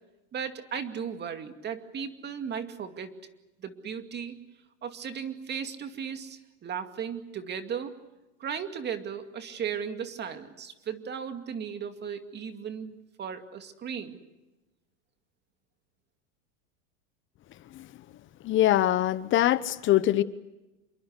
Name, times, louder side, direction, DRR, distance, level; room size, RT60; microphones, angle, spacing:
voice 1, 0.3-3.1 3.6-4.4 4.8-8.0 8.4-14.2, right 7 dB, 25° right, 7 dB, 2.4 m, -36 dB
voice 2, 18.4-20.2, left 13 dB, 30° left, 15 dB, 1.0 m, -23 dB
27.5 x 23.0 x 8.2 m, 1.0 s
supercardioid pair, 130°, 38 cm